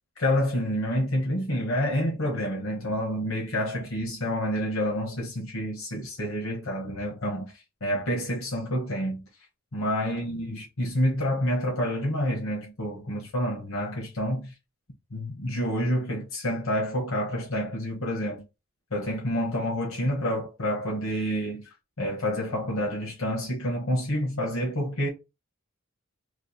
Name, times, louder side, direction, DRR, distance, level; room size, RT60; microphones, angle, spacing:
voice 1, 0.2-9.2 9.7-14.5 15.1-18.4 18.9-25.1, equal, 80° left, 1.2 m, -28 dB
3.2 x 2.4 x 4.0 m
head